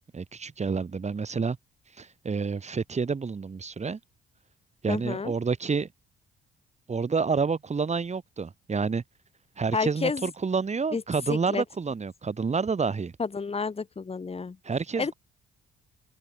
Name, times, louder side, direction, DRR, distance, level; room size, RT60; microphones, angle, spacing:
voice 1, 0.1-1.6 2.0-4.0 4.8-5.9 6.9-9.0 9.6-13.1 14.6-15.1, right 5 dB, 35° right, 5.5 m, -29 dB
voice 2, 4.9-5.3 9.7-10.3 10.9-11.0 11.3-11.6 13.2-14.6 15.0-15.1, left 4 dB, 30° left, 2.7 m, -30 dB
open air
cardioid pair, 90°, 20 cm